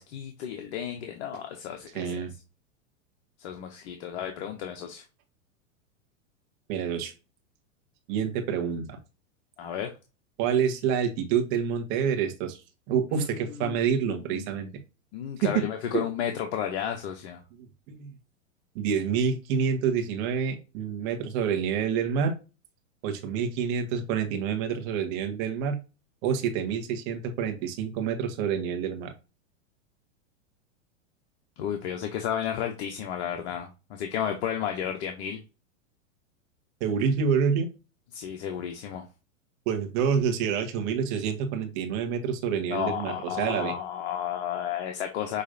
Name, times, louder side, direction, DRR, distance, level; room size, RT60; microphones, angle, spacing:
voice 1, 0.0-2.2 3.4-5.0 9.6-9.9 13.1-13.3 13.6-13.8 14.3-14.6 15.1-17.4 31.6-35.4 38.1-39.0 42.7-45.4, left 9 dB, 55° left, 4 dB, 1.0 m, -32 dB
voice 2, 1.9-2.3 6.7-7.1 8.1-9.0 10.4-12.6 12.9-14.7 15.4-15.6 15.9-16.0 17.6-18.1 18.7-22.3 23.0-25.8 26.2-29.1 36.8-37.7 39.6-43.7, right 7 dB, 45° right, 5 dB, 1.5 m, -27 dB
6.6 x 3.1 x 2.6 m, 0.30 s
hypercardioid pair, 125°, 40 cm